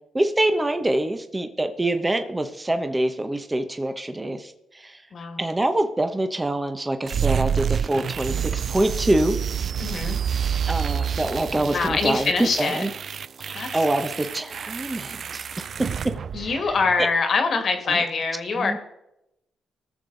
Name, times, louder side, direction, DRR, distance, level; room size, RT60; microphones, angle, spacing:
voice 1, 0.1-5.0 5.4-9.4 10.7-12.9 13.4-15.5 16.4-16.5 17.0-17.1 17.9-18.0 18.6-18.8, right 1 dB, 20° right, 7 dB, 1.0 m, -25 dB
sound 1, 7.1-17.0, right 8 dB, 60° right, 0.3 m, -28 dB
voice 2, 9.8-10.2 11.6-12.8 13.5-13.8 16.3-18.8, left 4 dB, 60° left, 6 dB, 1.9 m, -24 dB
18.5 x 6.8 x 4.0 m, 0.87 s
cardioid pair, 65°, 0 cm